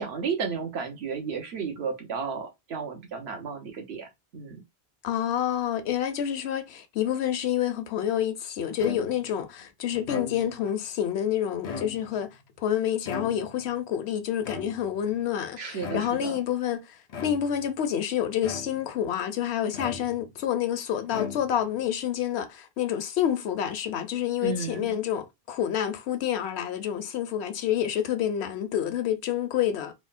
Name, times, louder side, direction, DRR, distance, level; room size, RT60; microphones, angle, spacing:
voice 1, 0.0-4.6 15.6-16.4 24.4-24.9, right 5 dB, 80° right, 1.1 m, -33 dB
voice 2, 5.0-17.0 17.2-29.9, left 10 dB, 90° left, 0.9 m, -28 dB
sound 1, 8.8-9.4 9.9-10.7 11.5-12.3 13.1-13.7 14.4-15.1 15.8-16.3 17.1-17.7 18.4-19.0 19.7-20.4 21.1-21.8, left 5 dB, 50° left, 0.5 m, -38 dB
3.5 x 2.1 x 2.4 m
omnidirectional pair, 1.1 m